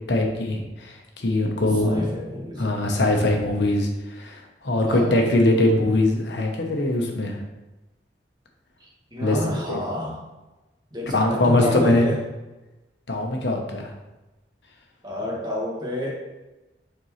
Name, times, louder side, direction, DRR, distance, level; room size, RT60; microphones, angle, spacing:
voice 1, 0.1-2.1 2.6-7.4 9.2-9.4 9.7-9.8 11.1-12.1 13.1-13.9, left 1 dB, 80° left, 2 dB, 1.1 m, -22 dB
voice 2, 1.8-2.9 4.8-5.2 8.8-10.2 10.9-12.2 15.0-16.1, left 1 dB, 25° right, -4 dB, 1.7 m, -30 dB
6.6 x 4.6 x 3.2 m, 1.1 s
head